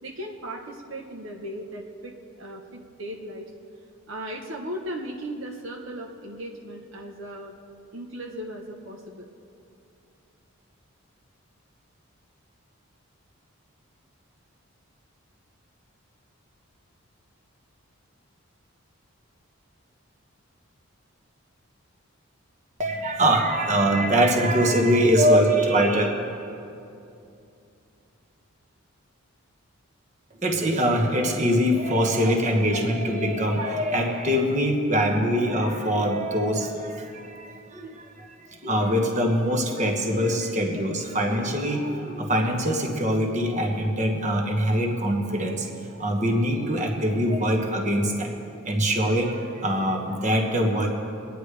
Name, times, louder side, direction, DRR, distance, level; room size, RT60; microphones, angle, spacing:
voice 1, 0.0-3.5 4.1-7.5 7.9-9.3, right 1 dB, 65° right, 0 dB, 1.1 m, -37 dB
voice 2, 22.8-26.1 30.4-38.4 38.6-48.3 48.6-50.9, equal, 35° right, 2 dB, 1.3 m, -23 dB
24.5 x 9.8 x 3.4 m, 2.6 s
head